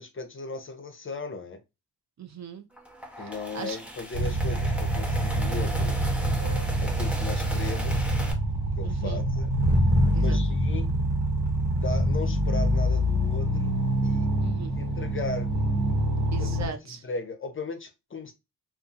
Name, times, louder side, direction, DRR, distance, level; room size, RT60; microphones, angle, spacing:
voice 1, 0.0-1.6 3.2-6.0 6.8-8.1 8.8-9.5 10.1-10.9 11.6-13.7 14.0-14.3 14.8-15.5 16.4-16.7 17.0-18.3, left 3 dB, 30° left, 0.5 m, -37 dB
voice 2, 2.2-2.7 3.2-3.8 8.8-9.2 10.1-10.4 14.4-14.7 16.3-17.0, right 6 dB, 45° right, 0.5 m, -39 dB
sound 1, 2.7-8.3, equal, 5° right, 0.7 m, -38 dB
sound 2, 4.1-16.7, equal, 80° right, 1.3 m, -25 dB
2.6 x 2.4 x 2.4 m
cardioid pair, 75°, 41 cm